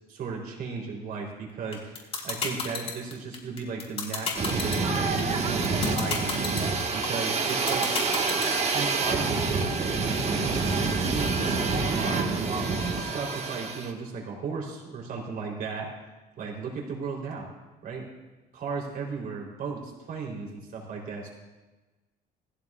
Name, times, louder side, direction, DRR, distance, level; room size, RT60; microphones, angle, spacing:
voice 1, 0.1-6.4 6.9-7.9 8.7-10.3 11.0-12.7 12.9-15.9 16.4-17.5 17.8-18.1 18.5-21.3, right 5 dB, 60° right, -1 dB, 3.6 m, -35 dB
sound 1, 1.7-8.7, left 5 dB, 35° left, 4.0 m, -30 dB
sound 2, 4.4-13.9, right 4 dB, 40° right, 1.5 m, -27 dB
20.5 x 15.0 x 2.4 m, 1.2 s
cardioid pair, 110°, 17 cm